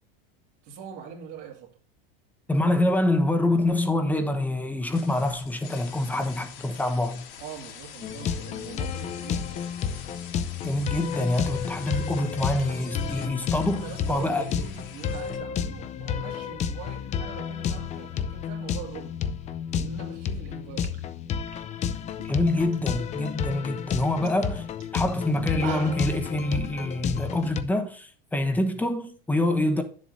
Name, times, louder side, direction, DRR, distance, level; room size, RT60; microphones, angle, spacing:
voice 1, 0.6-1.7 7.4-9.7 13.8-19.1 19.8-21.0 24.0-24.4, right 7 dB, 55° right, 2.3 m, -42 dB
voice 2, 2.5-7.3 10.6-14.4 22.2-24.6 24.9-29.8, left 1 dB, 5° left, 0.9 m, -26 dB
sound 1, 4.9-15.4, left 7 dB, 60° left, 2.5 m, -45 dB
sound 2, 8.0-27.6, left 7 dB, 25° left, 0.5 m, -31 dB
sound 3, 20.5-20.6 20.8-22.8 23.1-23.5 23.9-24.0 24.2-24.4 24.8-24.9 25.4-26.2, right 9 dB, 85° right, 2.1 m, -42 dB
9.9 x 7.4 x 2.6 m
supercardioid pair, 150°, 29 cm